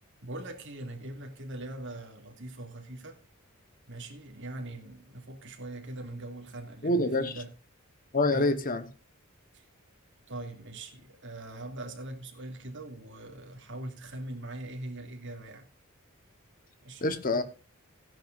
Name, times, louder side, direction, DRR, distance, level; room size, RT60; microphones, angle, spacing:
voice 1, 0.2-3.2 3.9-7.5 8.3-8.5 9.5-9.7 10.3-15.7 16.8-17.1, right 2 dB, 55° right, 2.6 m, -41 dB
voice 2, 6.8-7.4 8.1-8.9 17.0-17.4, left 2 dB, 40° left, 1.2 m, -26 dB
16.5 x 10.5 x 2.6 m
head